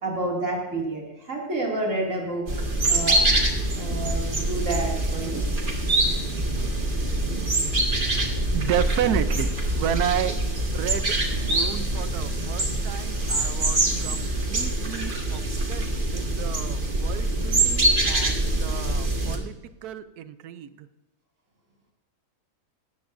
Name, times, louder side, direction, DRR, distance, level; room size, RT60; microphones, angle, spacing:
voice 1, 0.0-2.5 2.9-3.2 3.8-5.4, right 2 dB, 50° right, -2 dB, 2.9 m, -29 dB
sound 1, 2.5-19.4, right 1 dB, 35° right, 1.7 m, -24 dB
voice 2, 8.5-10.3 10.7-15.4 15.7-19.6 19.8-20.9, right 10 dB, 75° right, 12 dB, 1.2 m, -31 dB
18.0 x 14.0 x 2.6 m, 1.1 s
omnidirectional pair, 1.7 m